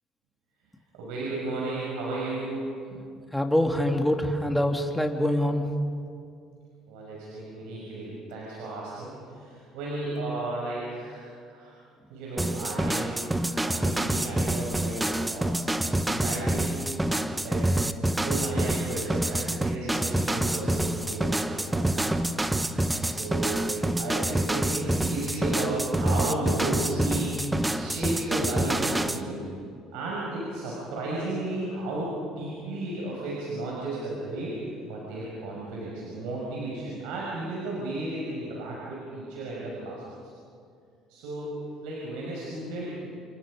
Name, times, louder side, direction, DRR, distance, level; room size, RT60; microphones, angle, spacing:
voice 1, 0.9-3.0 6.9-11.8 12.1-16.9 17.4-17.7 18.1-22.4 23.0-27.4 27.7-29.4 29.9-34.6 34.8-40.0 41.1-41.5 41.8-43.1, right 2 dB, 75° right, -4 dB, 6.4 m, -34 dB
voice 2, 3.3-5.6, left 1 dB, 5° left, 3 dB, 3.0 m, -24 dB
sound 1, 12.4-29.2, right 1 dB, 10° right, 1.3 m, -27 dB
29.5 x 27.0 x 5.3 m, 2.3 s
hypercardioid pair, 70°, 0 cm